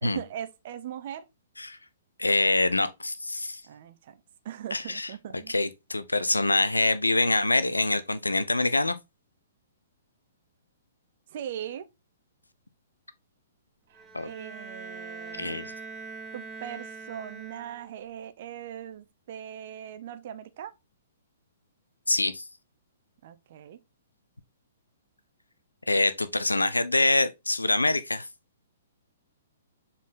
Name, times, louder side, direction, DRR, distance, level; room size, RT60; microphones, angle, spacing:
voice 1, 0.0-1.2 3.7-5.5 11.3-11.9 13.9-15.6 16.3-20.7 23.2-23.8, right 10 dB, 45° right, 0.9 m, -40 dB
voice 2, 2.2-3.6 4.7-5.1 5.5-8.9 14.1-14.3 15.4-15.7 22.1-22.4 25.9-28.3, left 2 dB, 80° left, 0.8 m, -25 dB
Bowed string instrument, 13.9-18.0, right 4 dB, 10° right, 1.2 m, -42 dB
7.3 x 4.3 x 3.7 m
figure-of-eight pair, 115°, 0 cm